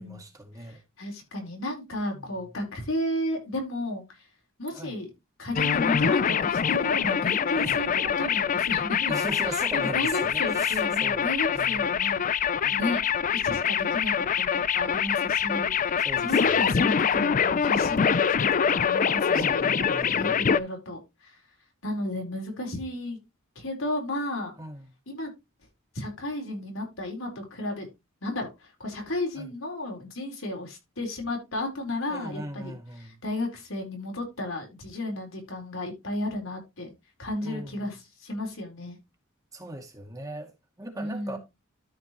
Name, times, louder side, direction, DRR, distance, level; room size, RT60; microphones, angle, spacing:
voice 1, 0.0-0.8 2.1-2.3 4.7-4.9 7.6-7.8 9.1-11.2 11.5-11.9 12.5-12.8 16.0-17.2 19.3-20.6 24.6-24.9 29.4-29.5 32.1-33.2 37.4-37.8 39.5-40.5 40.8-41.4, right 1 dB, 15° right, 2.0 m, -39 dB
voice 2, 0.6-4.0 4.6-5.1 5.4-9.1 9.4-12.2 12.7-13.0 13.3-21.4 21.8-23.2 23.6-24.6 25.1-25.3 25.9-27.9 28.2-36.9 37.2-39.0 41.0-41.4, left 1 dB, 75° left, 4.2 m, -33 dB
sound 1, 5.6-20.6, left 7 dB, 40° left, 0.4 m, -25 dB
13.0 x 5.1 x 3.0 m
head